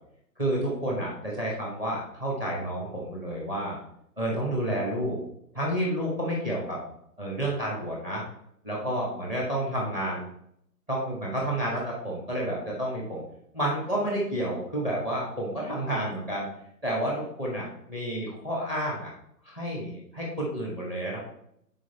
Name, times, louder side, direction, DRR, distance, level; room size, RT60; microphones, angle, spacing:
voice 1, 0.4-3.8 4.2-5.2 5.5-6.8 7.2-8.2 8.6-10.3 10.9-13.2 13.5-16.5 16.8-19.1 19.4-21.2, right 1 dB, 5° right, -3 dB, 0.9 m, -30 dB
6.3 x 4.4 x 4.2 m, 0.71 s
figure-of-eight pair, 140°, 49 cm